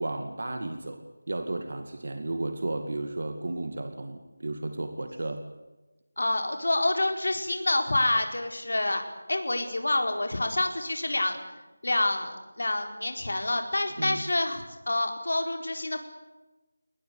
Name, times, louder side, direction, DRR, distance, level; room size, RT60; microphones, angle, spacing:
voice 1, 0.0-5.4 14.0-14.2, right 2 dB, 50° right, 7 dB, 2.0 m, -33 dB
voice 2, 6.2-9.0 9.3-11.4 11.8-16.0, left 2 dB, 70° left, 5 dB, 4.5 m, -27 dB
22.0 x 19.5 x 9.7 m, 1.1 s
figure-of-eight pair, 180°, 0 cm